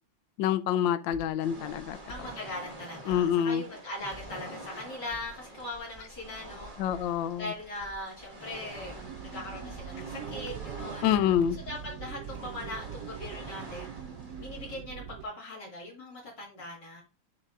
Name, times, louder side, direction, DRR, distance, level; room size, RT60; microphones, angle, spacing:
voice 1, 0.4-2.0 3.1-3.6 6.8-7.5 11.0-11.6, left 9 dB, 75° left, 1.2 m, -26 dB
sound 1, 1.1-1.3 2.1-2.3 3.1-3.3 4.1-4.4 5.1-5.4 5.9-6.2 6.8-7.1 7.8-8.1 8.7-9.1 9.6-9.9 10.4-10.8 11.4-11.6 12.3-12.6 13.2-13.5, equal, 25° left, 1.0 m, -49 dB
sound 2, 1.4-14.8, right 1 dB, 25° right, 1.6 m, -47 dB
voice 2, 2.1-6.7 7.4-11.1 11.7-13.9 14.4-17.0, left 1 dB, 55° left, 2.9 m, -40 dB
sound 3, 9.0-15.3, right 8 dB, 75° right, 0.9 m, -42 dB
7.4 x 6.5 x 2.5 m
omnidirectional pair, 2.3 m